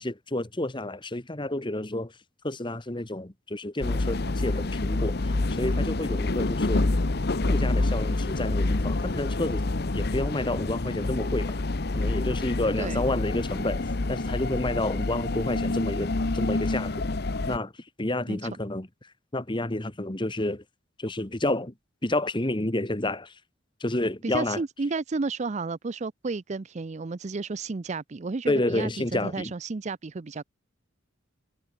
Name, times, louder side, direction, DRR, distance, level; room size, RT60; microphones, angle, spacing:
voice 1, 0.0-2.1 2.4-6.9 7.5-11.6 11.9-17.0 17.5-17.7 18.0-18.9 19.3-20.6 21.0-21.7 22.0-23.4 23.8-24.6 28.5-29.5, left 1 dB, 25° left, 1.5 m, -30 dB
sound 1, 3.8-17.6, left 2 dB, 55° left, 1.0 m, -27 dB
voice 2, 24.2-30.4, right 3 dB, 35° right, 0.5 m, -32 dB
head